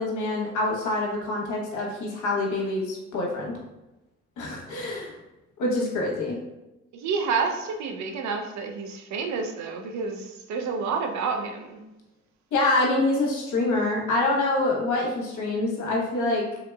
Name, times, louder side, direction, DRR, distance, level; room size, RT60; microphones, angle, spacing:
voice 1, 0.0-3.5 4.4-5.2 5.6-6.3 12.5-16.4, left 2 dB, 75° left, -2 dB, 1.0 m, -26 dB
voice 2, 6.9-11.8, right 5 dB, 70° right, 4 dB, 0.6 m, -29 dB
3.7 x 2.9 x 2.3 m, 0.98 s
cardioid pair, 90°, 30 cm